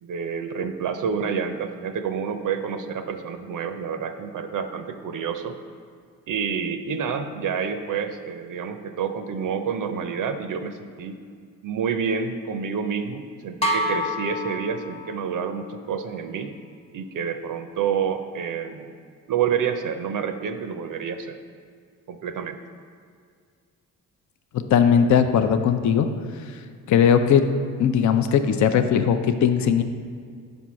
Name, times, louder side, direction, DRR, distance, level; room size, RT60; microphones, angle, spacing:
voice 1, 0.0-5.6 6.3-11.2 11.6-16.5 16.9-18.9 19.3-21.4 22.1-22.6, right 6 dB, 55° right, 8 dB, 0.6 m, -28 dB
sound 1, 13.6-15.4, equal, 15° left, 0.9 m, -27 dB
voice 2, 24.7-26.1 26.5-26.6 26.9-27.5 27.8-29.8, left 7 dB, 50° left, 8 dB, 0.6 m, -19 dB
5.3 x 4.3 x 6.1 m, 2.1 s
supercardioid pair, 55°, 38 cm